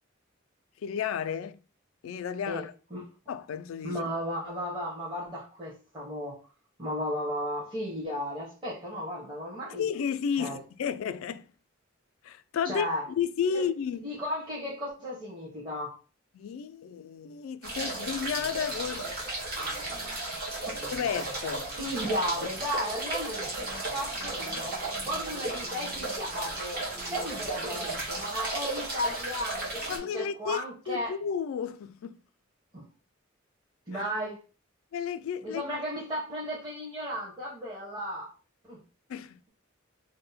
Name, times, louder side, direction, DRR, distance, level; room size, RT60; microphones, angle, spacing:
voice 1, 0.8-1.6 2.0-2.7 3.3-4.0 9.8-11.5 12.2-12.9 13.2-14.0 16.3-19.1 19.9-20.0 20.9-21.7 22.4-22.5 29.9-32.2 33.9-34.0 34.9-35.6 39.1-39.4, left 7 dB, 75° left, 0.3 m, -32 dB
voice 2, 3.8-6.4 6.8-9.9 10.4-10.6 12.6-13.0 13.5-13.7 13.9-15.9 20.5-20.8 21.8-26.8 27.1-31.2 32.7-32.9 33.9-34.4 35.4-38.3 38.7-38.8, equal, 25° right, 0.9 m, -34 dB
sound 1, 17.6-30.0, right 2 dB, 50° right, 1.1 m, -34 dB
2.7 x 2.1 x 4.0 m
head